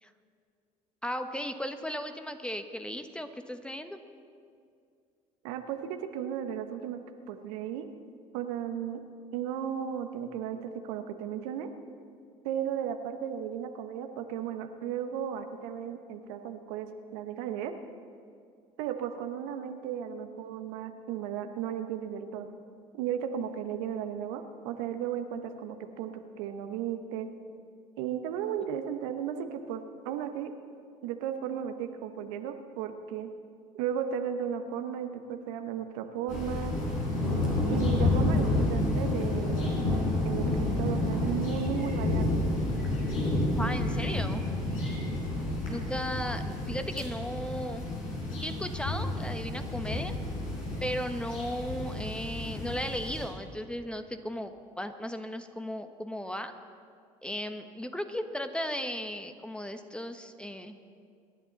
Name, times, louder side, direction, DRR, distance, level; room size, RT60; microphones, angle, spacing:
voice 1, 1.0-4.0 43.6-44.4 45.6-47.8 48.4-50.2 50.8-56.5 57.2-60.8, equal, 5° left, 8 dB, 1.2 m, -36 dB
voice 2, 5.4-7.0 7.3-7.9 8.3-9.0 9.3-11.7 12.4-17.7 18.8-22.5 22.9-27.3 28.0-30.5 31.0-33.3 33.7-36.7 37.7-39.7 40.2-42.3, right 9 dB, 70° right, 7 dB, 1.1 m, -35 dB
sound 1, 36.3-53.3, left 2 dB, 80° left, 4.8 m, -30 dB
25.5 x 11.0 x 4.1 m, 2.3 s
hypercardioid pair, 65°, 17 cm